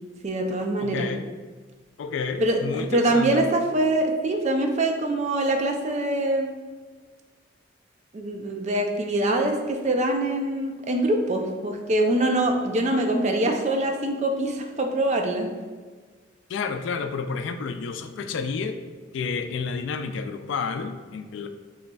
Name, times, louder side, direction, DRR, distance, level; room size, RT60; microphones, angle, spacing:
voice 1, 0.2-1.1 2.4-6.5 8.1-15.5, right 1 dB, 35° right, 4 dB, 0.4 m, -24 dB
voice 2, 0.8-1.2 2.0-3.4 16.5-18.8 19.1-21.5, left 5 dB, 70° left, 8 dB, 0.3 m, -30 dB
6.4 x 3.1 x 2.3 m, 1.4 s
head